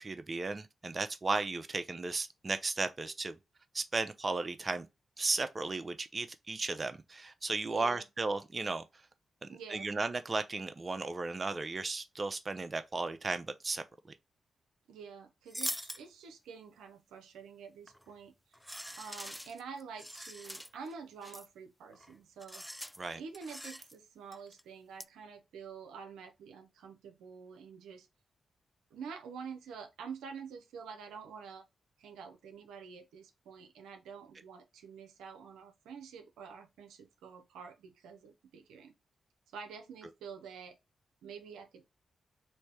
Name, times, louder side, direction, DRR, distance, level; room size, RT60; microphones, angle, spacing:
voice 1, 0.0-3.4 3.7-4.9 5.2-8.8 9.4-13.8 23.0-23.2, right 3 dB, 40° right, 0.6 m, -35 dB
voice 2, 7.6-8.1 9.5-9.9 14.9-18.3 19.0-22.6 23.2-28.1 28.9-31.6 32.0-38.9 39.5-40.8 41.2-41.8, right 6 dB, 85° right, 0.6 m, -48 dB
sound 1, 15.5-16.0 17.9-18.1 18.5-20.9 21.2-21.5 21.9-22.1 22.4-23.0 23.3-24.0 24.3-24.6 25.0-25.1, equal, 5° left, 0.3 m, -43 dB
3.3 x 2.7 x 4.6 m
supercardioid pair, 40°, 0 cm